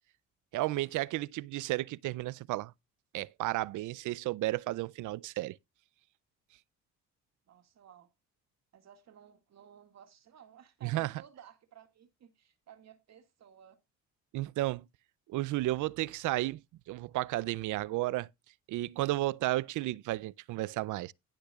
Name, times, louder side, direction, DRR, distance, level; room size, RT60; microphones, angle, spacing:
voice 1, 0.5-2.7 3.1-5.6 10.8-11.1 14.3-14.8 15.3-16.6 16.9-18.3 18.7-21.1, right 17 dB, 80° right, 0.5 m, -33 dB
voice 2, 7.5-8.1 8.7-13.8, right 9 dB, 60° right, 2.0 m, -56 dB
18.0 x 6.7 x 2.3 m
cardioid pair, 90°, 30 cm